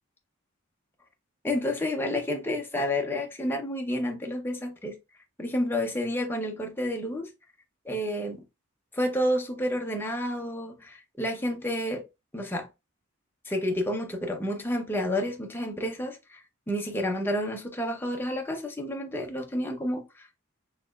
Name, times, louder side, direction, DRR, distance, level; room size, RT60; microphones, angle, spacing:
voice 1, 1.4-5.0 5.4-7.3 7.8-8.4 8.9-12.0 12.3-12.7 13.4-20.3, left 1 dB, 10° left, 0.5 m, -30 dB
4.2 x 2.9 x 2.3 m
head